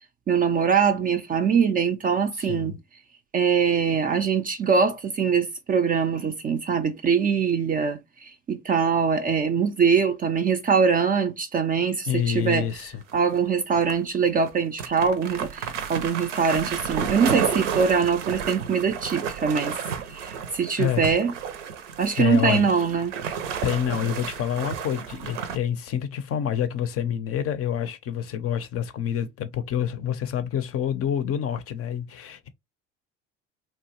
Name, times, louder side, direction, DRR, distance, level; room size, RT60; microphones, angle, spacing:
voice 1, 0.3-2.7 3.3-12.7 13.1-19.7 20.1-21.3 22.0-23.1, right 6 dB, 25° right, 0.3 m, -23 dB
voice 2, 2.3-2.8 12.1-13.0 20.8-21.1 22.2-22.7 23.6-32.5, left 9 dB, 40° left, 0.5 m, -27 dB
sound 1, 12.7-13.4 13.7-13.9 14.4-14.5 14.8-25.6, right 7 dB, 85° right, 0.6 m, -32 dB
2.8 x 2.3 x 2.8 m
hypercardioid pair, 70°, 36 cm